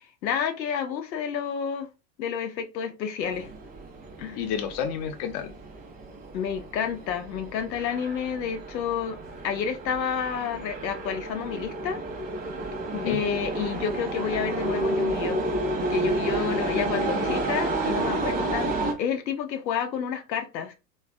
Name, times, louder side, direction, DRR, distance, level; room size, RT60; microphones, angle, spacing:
voice 1, 0.0-1.9 2.2-3.5 4.2-4.4 6.3-9.2 9.4-12.0 13.1-15.4 15.8-20.7, left 7 dB, 90° left, 0.6 m, -30 dB
sound 1, 3.2-18.9, right 2 dB, 20° right, 0.3 m, -31 dB
voice 2, 4.3-5.5 12.9-13.2 16.7-17.4, left 8 dB, 45° left, 0.7 m, -31 dB
3.5 x 2.2 x 2.5 m
hypercardioid pair, 95°, 49 cm